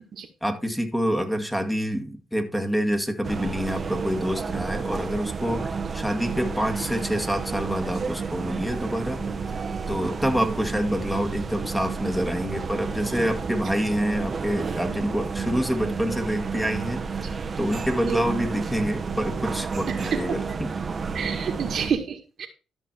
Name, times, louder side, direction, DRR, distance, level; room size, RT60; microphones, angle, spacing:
voice 1, 0.4-9.2 9.9-17.0 17.6-20.7, equal, 5° left, 6 dB, 1.9 m, -27 dB
sound 1, 3.2-21.9, right 5 dB, 35° right, 1.1 m, -31 dB
voice 2, 17.9-18.2 19.9-20.4 21.1-22.5, right 7 dB, 55° right, 6 dB, 1.7 m, -29 dB
13.0 x 6.1 x 4.4 m, 0.32 s
cardioid pair, 90°, 0 cm